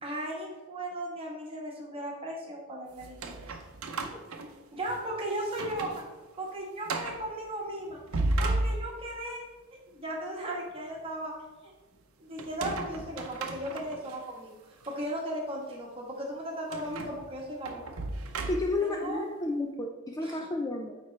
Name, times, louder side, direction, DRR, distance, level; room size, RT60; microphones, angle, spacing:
voice 1, 0.0-3.4 4.7-6.0 6.4-8.0 8.4-9.4 9.9-11.3 11.6-11.7 12.2-14.5 14.9-17.8 18.8-19.3 20.2-20.4, right 1 dB, 25° right, -1 dB, 1.2 m, -36 dB
sound 1, 3.0-5.1 5.5-6.0 6.4-6.5 6.9-7.3 7.9-9.2 12.4-14.2 14.8-14.9 16.7-18.9, right 2 dB, 85° right, 0.7 m, -34 dB
voice 2, 18.5-21.0, left 2 dB, 15° left, 2 dB, 0.4 m, -31 dB
8.8 x 3.7 x 3.2 m, 1.2 s
head